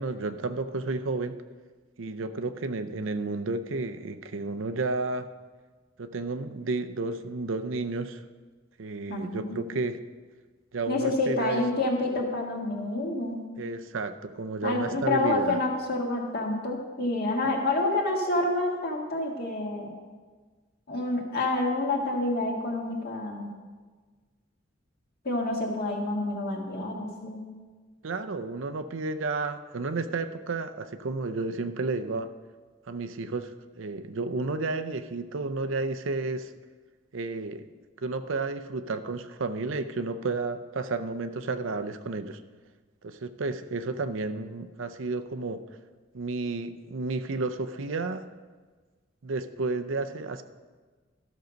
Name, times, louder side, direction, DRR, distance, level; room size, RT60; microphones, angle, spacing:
voice 1, 0.0-1.4 2.0-5.3 6.0-8.2 8.8-10.0 10.7-11.6 13.6-15.6 28.0-32.3 32.9-33.5 33.8-36.5 37.1-37.7 38.0-42.4 43.0-45.6 46.1-48.2 49.2-50.4, right 3 dB, 75° right, 9 dB, 0.6 m, -32 dB
voice 2, 9.1-9.6 10.9-13.4 14.6-20.0 20.9-23.5 25.3-27.4, left 2 dB, 55° left, 0 dB, 1.8 m, -28 dB
13.0 x 6.4 x 5.2 m, 1.4 s
head